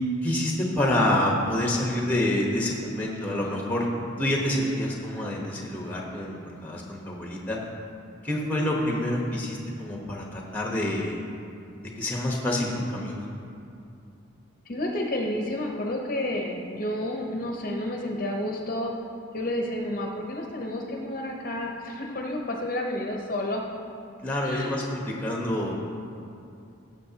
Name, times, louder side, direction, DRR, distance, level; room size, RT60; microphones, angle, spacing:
voice 1, 0.2-3.9 4.2-7.6 8.2-11.2 11.8-13.3 24.2-25.7, left 1 dB, 10° left, -1 dB, 1.0 m, -27 dB
voice 2, 14.7-18.9 19.3-23.7 24.4-24.8, left 1 dB, 45° left, 0 dB, 0.8 m, -30 dB
16.0 x 7.3 x 2.8 m, 2.5 s
head